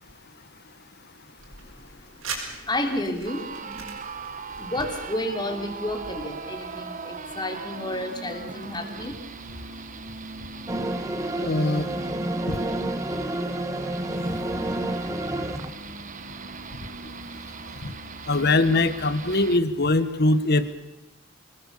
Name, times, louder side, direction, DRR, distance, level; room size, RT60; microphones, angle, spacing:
sound 1, 1.4-6.4, right 4 dB, 75° right, 6.2 m, -41 dB
voice 1, 2.5-3.9 4.5-9.1, left 1 dB, 20° left, 5 dB, 3.1 m, -31 dB
sound 2, 3.2-19.6, right 4 dB, 40° right, 1.1 m, -39 dB
sound 3, 10.7-15.7, right 1 dB, 15° right, 1.3 m, -29 dB
voice 2, 11.4-11.9 12.5-12.6 17.8-17.9 18.3-20.7, left 2 dB, 50° left, 13 dB, 1.4 m, -22 dB
26.0 x 20.0 x 6.9 m, 0.98 s
head